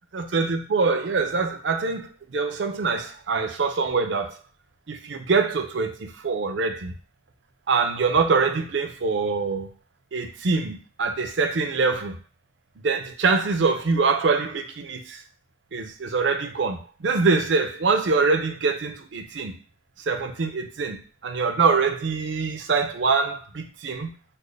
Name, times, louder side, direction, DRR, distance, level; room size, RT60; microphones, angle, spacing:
voice 1, 0.1-4.4 4.9-6.9 7.7-9.7 10.1-12.2 12.8-15.2 15.7-19.5 20.1-24.1, right 4 dB, 70° right, 0.5 m, -24 dB
4.2 x 2.1 x 3.3 m
head